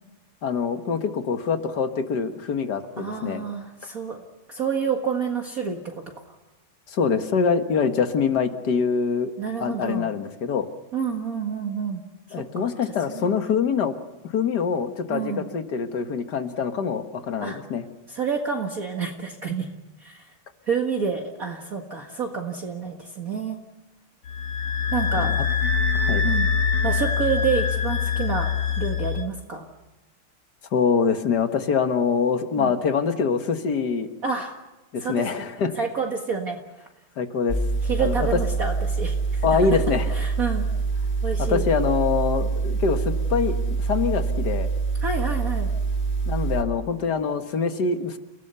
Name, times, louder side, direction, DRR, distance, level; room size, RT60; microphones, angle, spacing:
voice 1, 0.4-3.4 6.9-9.3 9.6-10.7 12.3-14.0 14.2-17.9 25.1-25.4 26.0-26.3 30.7-34.1 34.9-35.7 37.2-37.6 38.0-38.4 39.4-40.1 41.4-44.7 46.3-48.2, left 5 dB, 50° left, 7 dB, 2.0 m, -24 dB
voice 2, 3.0-4.2 4.5-5.9 9.4-10.1 10.9-12.0 12.3-12.7 13.1-13.3 15.1-15.5 17.4-17.6 18.1-19.7 20.0-20.3 20.7-23.6 24.9-25.4 26.2-26.5 26.8-29.7 32.6-32.7 34.2-34.6 35.0-35.2 35.7-36.6 37.8-39.5 40.1-40.7 41.2-41.6 45.0-45.7, right 5 dB, 40° right, 2 dB, 2.1 m, -28 dB
sound 1, 24.3-29.2, left 6 dB, 90° left, 2.3 m, -24 dB
sound 2, 37.5-46.6, right 4 dB, 30° left, 2.4 m, -25 dB
30.0 x 18.0 x 6.9 m, 1.1 s
omnidirectional pair, 2.4 m